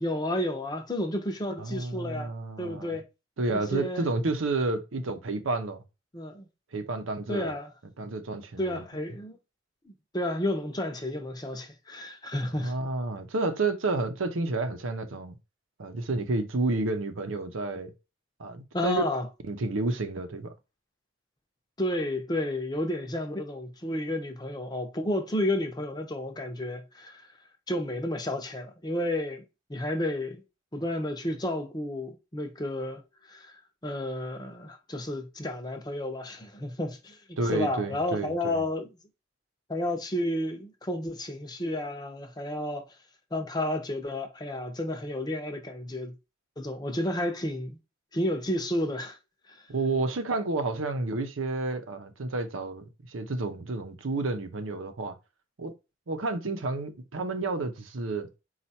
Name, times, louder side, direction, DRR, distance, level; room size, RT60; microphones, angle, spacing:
voice 1, 0.0-2.3 2.6-3.1 3.5-4.1 6.1-6.5 7.3-7.7 8.6-9.4 9.8-12.7 18.7-19.3 21.8-27.3 27.7-29.4 29.7-30.4 30.7-33.0 33.3-37.2 37.5-38.9 39.7-42.8 43.3-46.2 46.6-47.8 48.1-49.2 49.5-49.6, left 1 dB, 20° left, 0.7 m, -31 dB
voice 2, 1.6-3.0 3.4-5.8 6.7-7.6 8.0-8.8 12.6-15.4 15.8-17.9 18.4-19.0 19.5-20.5 37.4-38.6 49.7-55.1 55.6-55.7 56.1-58.3, right 3 dB, 90° right, 0.7 m, -30 dB
4.4 x 2.4 x 4.1 m
head